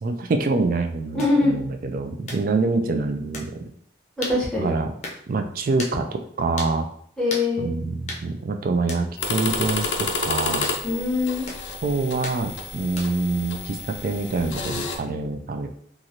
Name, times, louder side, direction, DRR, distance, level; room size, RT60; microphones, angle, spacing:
voice 1, 0.0-3.6 4.6-4.9 5.3-6.9 7.6-10.7 11.8-15.7, right 3 dB, 45° right, 6 dB, 0.3 m, -25 dB
voice 2, 1.1-1.5 4.2-4.7 7.2-7.7 10.8-11.5, left 3 dB, 5° left, -5 dB, 0.7 m, -22 dB
sound 1, 1.2-1.4 2.3-2.5 3.3-3.5 4.2-4.4 5.0-5.2 5.8-6.0 6.6-6.8 7.3-7.5 8.1-8.3 8.9-9.1 9.8-10.0 10.6-10.8 11.5-11.7 12.2-12.4 13.0-13.3, left 2 dB, 35° left, 0.6 m, -34 dB
sound 2, 9.2-15.0, left 3 dB, 80° left, 0.5 m, -30 dB
2.9 x 2.5 x 2.7 m, 0.64 s
head